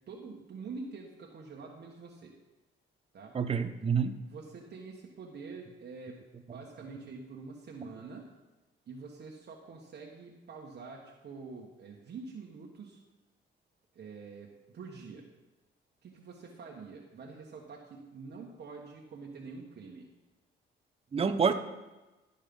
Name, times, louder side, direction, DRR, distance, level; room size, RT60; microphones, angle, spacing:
voice 1, 0.1-2.3 3.1-3.3 4.2-6.2 6.4-8.3 8.9-13.0 13.9-15.2 16.0-20.1, right 4 dB, 55° right, -1 dB, 1.4 m, -46 dB
voice 2, 3.3-4.2 21.1-21.5, right 6 dB, 30° right, 8 dB, 0.7 m, -27 dB
12.0 x 5.5 x 5.3 m, 1.1 s
cardioid pair, 90°, 20 cm